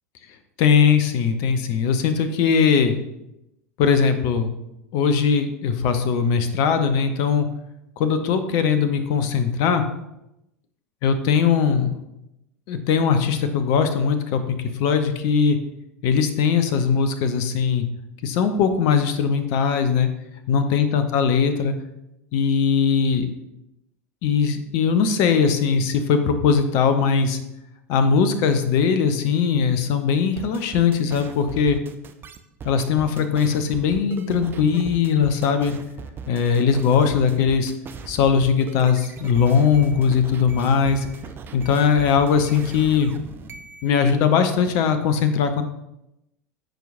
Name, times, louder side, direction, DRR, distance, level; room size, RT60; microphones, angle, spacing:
voice 1, 0.6-3.0 3.8-4.5 4.9-7.5 8.0-9.8 11.0-12.0 12.7-15.6 16.0-17.9 18.2-20.1 20.5-21.7 22.3-23.3 24.2-27.4 27.9-31.8 32.6-35.7 36.3-37.7 38.1-41.1 41.5-43.1 43.8-45.6, left 6 dB, 45° left, 9 dB, 0.8 m, -20 dB
sound 1, 30.4-43.9, right 6 dB, 25° right, 0.6 m, -39 dB
14.0 x 4.7 x 2.6 m, 0.87 s
figure-of-eight pair, 80°, 8 cm